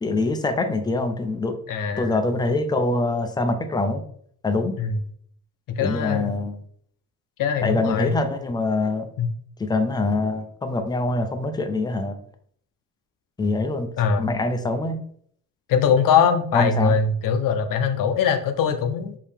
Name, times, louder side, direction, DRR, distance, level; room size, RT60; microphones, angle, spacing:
voice 1, 0.0-1.6 2.0-4.0 4.4-4.8 5.8-6.6 7.6-9.1 9.6-12.2 13.4-13.9 14.2-15.0 16.5-17.0, left 2 dB, 10° left, 7 dB, 0.4 m, -24 dB
voice 2, 1.7-2.2 4.8-5.0 5.7-6.3 7.4-8.2 9.2-9.3 14.0-14.3 15.7-19.2, left 6 dB, 65° left, 8 dB, 0.6 m, -22 dB
4.7 x 2.8 x 3.4 m, 0.62 s
cardioid pair, 135°, 35 cm